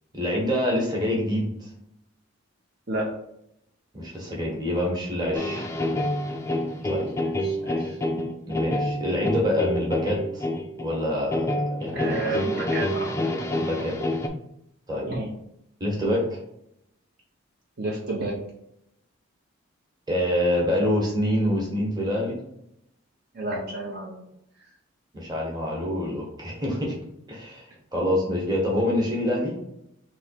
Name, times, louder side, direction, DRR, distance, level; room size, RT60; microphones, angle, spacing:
voice 1, 0.1-1.7 3.9-5.7 6.8-7.1 8.5-10.5 10.8-12.2 13.7-13.9 14.9-15.1 15.8-16.4 20.1-22.4 25.1-27.0 27.3-29.5, left 1 dB, 20° right, -2 dB, 1.2 m, -26 dB
sound 1, 5.3-14.3, left 1 dB, 15° left, 0.4 m, -28 dB
voice 2, 7.4-8.2 11.9-13.1 15.1-15.3 17.8-18.3 23.3-24.3, right 2 dB, 50° right, -3 dB, 0.8 m, -31 dB
3.6 x 3.0 x 4.4 m, 0.78 s
head